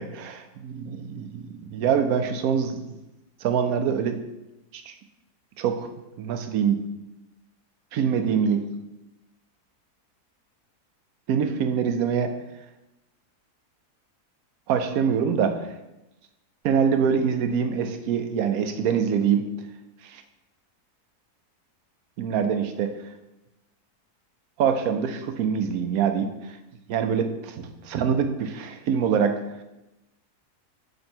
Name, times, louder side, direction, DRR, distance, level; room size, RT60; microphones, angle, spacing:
voice 1, 0.1-3.0 3.4-4.2 4.7-4.9 5.6-5.9 6.2-6.8 7.9-8.7 11.3-12.3 14.7-15.7 16.6-19.5 20.0-20.2 22.2-22.9 24.6-26.3 26.9-29.4, right 7 dB, 70° right, 7 dB, 1.1 m, -24 dB
6.7 x 4.4 x 4.4 m, 0.96 s
omnidirectional pair, 1.7 m